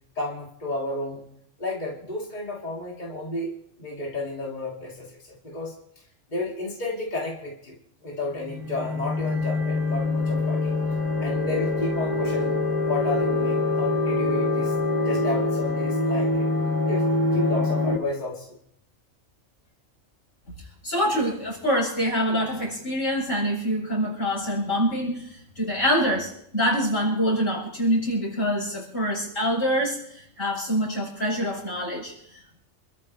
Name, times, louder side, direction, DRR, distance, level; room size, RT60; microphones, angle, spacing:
voice 1, 0.1-1.2 1.6-3.5 3.8-5.7 6.3-10.7 11.2-14.7 15.0-16.5 16.9-18.5, left 2 dB, 35° left, -3 dB, 3.0 m, -32 dB
sound 1, 8.4-18.0, left 2 dB, 15° right, 2.5 m, -25 dB
voice 2, 20.8-32.6, equal, 85° left, -5 dB, 8.5 m, -25 dB
28.5 x 13.5 x 3.4 m, 0.72 s
omnidirectional pair, 1.4 m